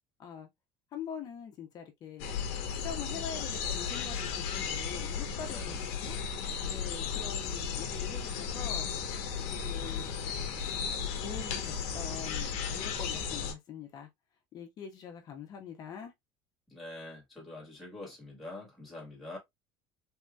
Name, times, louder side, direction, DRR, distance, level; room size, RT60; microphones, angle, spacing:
voice 1, 0.9-2.3 2.7-6.2 6.6-8.9 9.5-10.1 11.2-14.1 14.5-16.1, left 7 dB, 40° left, 1.0 m, -44 dB
sound 1, 2.2-13.5, left 6 dB, 70° left, 0.9 m, -35 dB
voice 2, 5.4-5.8 6.8-7.0 16.7-19.4, left 2 dB, ahead, 1.5 m, -45 dB
3.6 x 2.9 x 2.3 m
cardioid pair, 165°, 11 cm